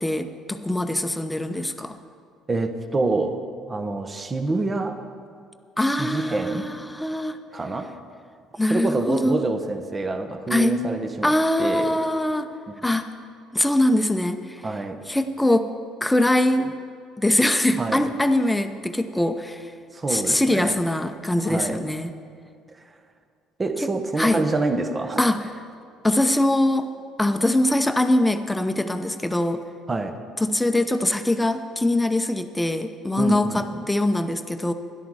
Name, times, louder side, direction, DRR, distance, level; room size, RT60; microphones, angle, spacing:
voice 1, 0.0-2.0 5.8-7.4 8.6-9.4 10.5-10.7 11.2-12.5 12.8-13.1 13.5-14.6 15.1-15.7 16.0-16.7 17.2-19.7 20.1-22.1 24.2-24.4 25.2-25.5 26.0-26.9 27.2-29.6 30.4-34.7, left 1 dB, 10° left, 8 dB, 0.8 m, -22 dB
voice 2, 2.5-3.4 3.7-5.0 6.0-6.7 7.5-7.9 8.7-12.0 14.6-15.1 17.8-18.1 19.9-20.8 21.4-21.8 23.6-25.3 29.9-30.2 33.2-33.9, right 2 dB, 30° right, 7 dB, 1.1 m, -26 dB
13.0 x 11.0 x 4.8 m, 2.3 s
hypercardioid pair, 60°, 0 cm